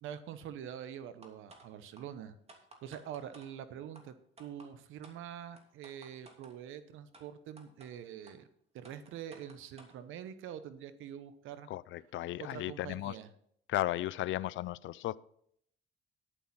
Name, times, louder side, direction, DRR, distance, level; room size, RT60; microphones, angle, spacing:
voice 1, 0.0-2.4 2.8-8.5 8.7-11.7 12.5-13.3, right 9 dB, 90° right, 12 dB, 0.9 m, -45 dB
sound 1, 1.2-1.7 2.0-2.1 2.5-3.5 3.9-4.0 4.4-4.7 5.0-5.2 5.6-6.5 7.1-7.2 7.6-7.9 8.3-8.4 8.8-10.0, right 2 dB, 30° right, 2.7 m, -55 dB
voice 2, 11.7-13.2 13.7-15.2, left 15 dB, 75° left, 19 dB, 0.5 m, -35 dB
10.5 x 10.0 x 4.2 m, 0.66 s
cardioid pair, 90°, 20 cm